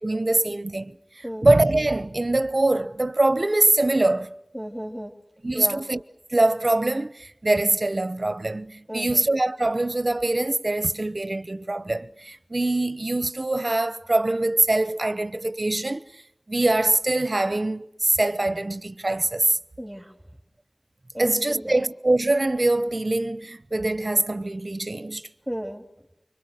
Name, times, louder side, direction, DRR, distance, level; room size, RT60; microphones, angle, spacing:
voice 1, 0.0-1.0 1.4-4.3 5.4-6.0 6.3-16.0 16.5-19.6 21.2-25.3, right 2 dB, 50° right, 1.0 m, -23 dB
voice 2, 4.5-5.1 5.5-5.8 8.9-9.2 19.8-20.1 21.1-21.8 25.5-25.8, equal, 5° right, 2.8 m, -33 dB
26.0 x 24.5 x 6.5 m
wide cardioid pair, 50°, 0 cm